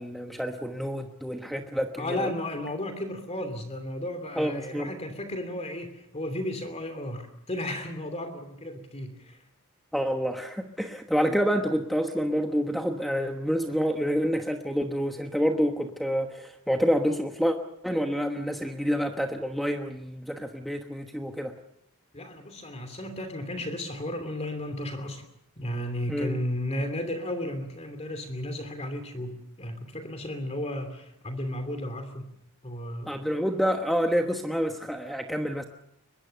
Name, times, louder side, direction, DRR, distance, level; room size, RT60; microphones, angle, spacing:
voice 1, 0.0-2.3 4.4-4.9 9.9-17.6 17.8-21.5 26.1-26.4 33.1-35.6, equal, ahead, 4 dB, 1.1 m, -28 dB
voice 2, 2.0-9.4 22.1-25.2 25.6-32.3 32.6-33.3, left 1 dB, 30° left, 7 dB, 2.8 m, -34 dB
23.0 x 21.5 x 6.8 m, 0.77 s
head